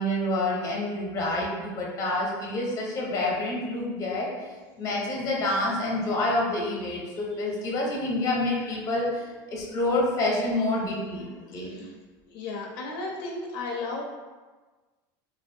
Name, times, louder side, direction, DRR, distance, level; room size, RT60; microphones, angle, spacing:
voice 1, 0.0-4.3 4.8-11.7, left 2 dB, 30° left, -3 dB, 0.6 m, -28 dB
voice 2, 11.6-11.9 12.3-14.0, left 3 dB, 75° left, -1 dB, 0.4 m, -35 dB
2.5 x 2.1 x 2.6 m, 1.3 s
supercardioid pair, 145°, 11 cm